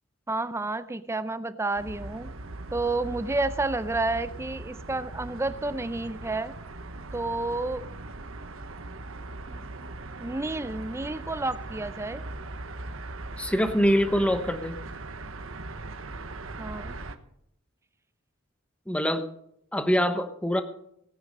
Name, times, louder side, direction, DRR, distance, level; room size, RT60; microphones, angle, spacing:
voice 1, 0.3-2.3 2.7-6.5 7.1-7.9 9.5-9.9 10.2-12.2 16.6-17.0, right 2 dB, 15° right, 14 dB, 0.5 m, -30 dB
sound 1, 1.8-17.2, right 2 dB, 80° right, 1.1 m, -40 dB
voice 2, 13.4-14.8 18.9-19.3 19.7-20.6, equal, 5° left, 9 dB, 1.1 m, -24 dB
18.0 x 9.4 x 5.4 m, 0.73 s
head